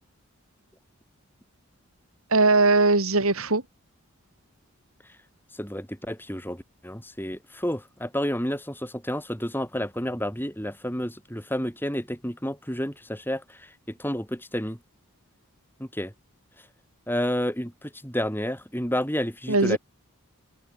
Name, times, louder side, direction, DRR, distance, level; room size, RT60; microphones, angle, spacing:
voice 1, 2.3-3.6 19.5-19.8, right 3 dB, 75° right, 3.5 m, -20 dB
voice 2, 5.6-13.7 14.0-14.8 15.8-16.1 17.1-19.8, equal, 10° left, 7.6 m, -30 dB
head